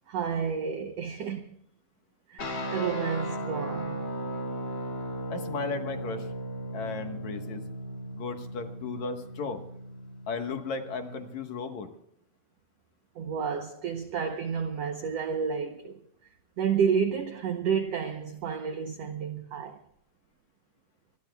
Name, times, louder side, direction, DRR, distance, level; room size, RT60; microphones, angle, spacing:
voice 1, 0.1-1.5 2.3-4.0 13.1-16.0 16.6-19.8, right 6 dB, 80° right, 1.4 m, -30 dB
sound 1, 2.4-11.3, right 1 dB, 35° left, 2.6 m, -36 dB
voice 2, 5.3-6.3 6.7-7.6 8.1-9.6 10.3-11.9, left 4 dB, 60° left, 2.4 m, -35 dB
26.0 x 22.0 x 2.3 m
omnidirectional pair, 4.2 m